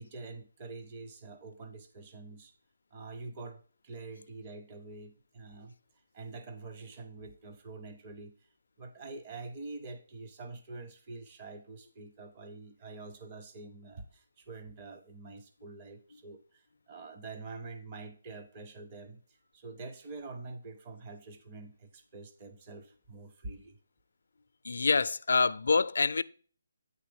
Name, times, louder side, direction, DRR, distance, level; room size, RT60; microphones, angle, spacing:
voice 1, 0.0-2.5 2.9-5.7 6.1-8.3 8.8-23.8, right 3 dB, 20° right, 0.6 m, -46 dB
voice 2, 24.6-26.2, left 4 dB, 65° left, 0.4 m, -26 dB
9.2 x 3.3 x 5.0 m
hypercardioid pair, 180°, 0 cm